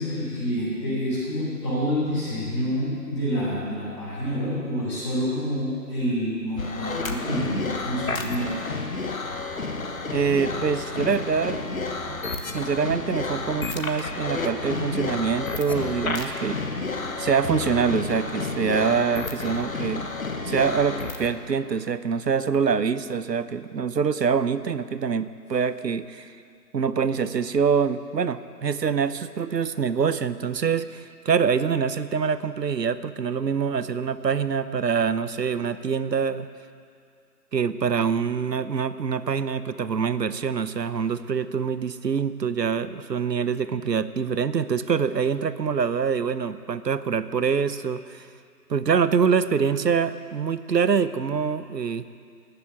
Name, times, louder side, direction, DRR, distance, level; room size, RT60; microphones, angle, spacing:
voice 1, 0.0-8.7, equal, 20° left, -10 dB, 3.4 m, -28 dB
sound 1, 6.6-21.3, left 3 dB, 55° left, 1.4 m, -30 dB
voice 2, 10.1-11.7 12.1-12.2 12.5-16.6 17.2-20.1 20.4-26.3 26.7-36.5 37.5-48.3 48.7-52.1, right 6 dB, 80° right, 13 dB, 0.9 m, -25 dB
19.0 x 6.9 x 8.3 m, 2.3 s
figure-of-eight pair, 165°, 49 cm